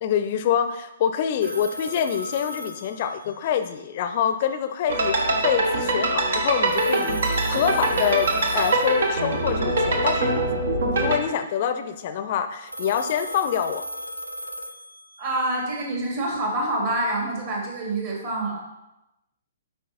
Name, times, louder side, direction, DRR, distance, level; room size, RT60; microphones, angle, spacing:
voice 1, 0.0-10.4 10.9-13.8, left 8 dB, 40° left, 9 dB, 0.6 m, -26 dB
sound 1, 1.4-3.7 6.7-9.5 12.7-15.6, left 1 dB, 90° right, 0.6 m, -36 dB
sound 2, 4.9-11.2, right 2 dB, 55° right, 1.2 m, -23 dB
voice 2, 15.2-18.6, right 1 dB, 40° right, -2 dB, 2.4 m, -26 dB
8.5 x 5.3 x 4.2 m, 0.93 s
figure-of-eight pair, 120°, 0 cm